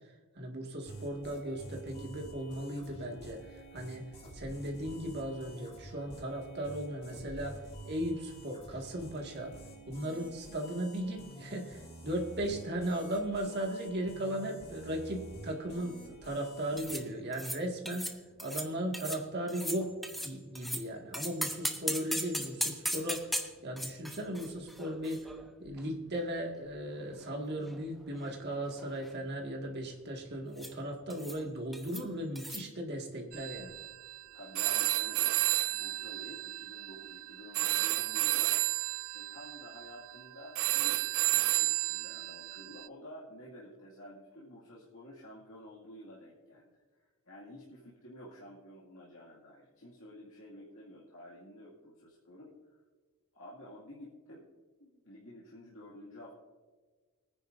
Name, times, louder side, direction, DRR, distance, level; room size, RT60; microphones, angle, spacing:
voice 1, 0.4-4.0 4.3-9.5 9.9-23.3 23.6-25.3 25.6-33.7, right 1 dB, 50° right, 1 dB, 2.0 m, -37 dB
sound 1, 0.9-16.9, right 1 dB, 30° left, 3.7 m, -49 dB
sound 2, 16.8-17.0 17.3-17.6 17.9-18.1 18.4-18.7 18.9-19.2 19.5-20.8 21.1-25.8 26.1-26.2 26.9-27.8 28.1-28.4 28.7-29.1 30.6-30.8 31.1-31.4 31.7-32.0 32.4-32.6, equal, ahead, 0.9 m, -38 dB
sound 3, 33.3-42.9, right 20 dB, 70° right, 0.3 m, -32 dB
voice 2, 34.3-38.6 39.1-52.5 53.3-54.5 54.8-56.3, equal, 75° left, -6 dB, 2.2 m, -51 dB
23.0 x 9.9 x 2.6 m, 1.4 s
head